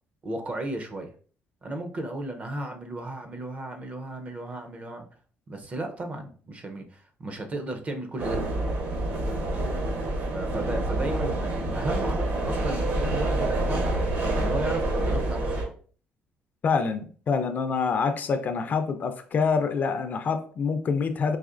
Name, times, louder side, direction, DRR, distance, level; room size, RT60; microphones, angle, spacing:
voice 1, 0.2-1.1 1.6-5.1 5.5-8.4 9.5-9.6 10.2-14.0 14.3-15.6, right 1 dB, 35° right, 5 dB, 0.7 m, -34 dB
sound 1, 8.2-15.6, right 2 dB, 60° right, 1.2 m, -27 dB
voice 2, 16.6-21.4, left 5 dB, 45° left, 8 dB, 0.4 m, -26 dB
4.1 x 2.9 x 2.5 m, 0.43 s
cardioid pair, 110°, 4 cm